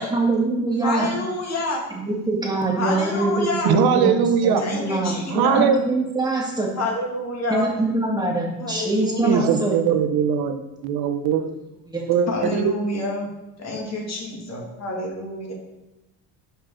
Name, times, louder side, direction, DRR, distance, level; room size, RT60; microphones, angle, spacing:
voice 1, 0.0-1.1 1.9-6.7 7.5-9.8 11.9-12.1, right 2 dB, 10° right, -2 dB, 2.2 m, -24 dB
voice 2, 0.8-1.8 2.8-3.7 4.6-5.7 6.8-7.7 8.6-9.5 12.3-13.3 13.6-15.5, left 2 dB, 45° left, -1 dB, 2.3 m, -28 dB
voice 3, 3.6-4.6 5.3-5.8 9.2-11.4 12.1-12.7, right 7 dB, 75° right, 8 dB, 0.8 m, -20 dB
6.6 x 4.6 x 6.3 m, 0.96 s
cardioid pair, 105°, 38 cm